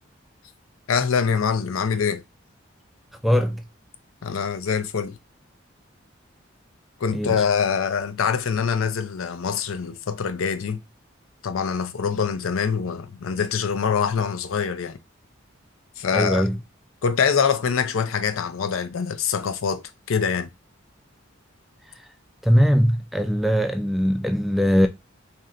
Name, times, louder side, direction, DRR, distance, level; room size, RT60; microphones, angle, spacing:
voice 1, 0.9-2.2 4.2-5.2 7.0-10.8 11.4-15.0 16.0-16.5 17.0-19.8 20.1-20.5, left 6 dB, 85° left, 0.5 m, -24 dB
voice 2, 3.2-3.6 7.1-7.4 16.1-16.6 22.4-24.9, equal, ahead, 0.3 m, -20 dB
3.2 x 2.6 x 3.8 m
head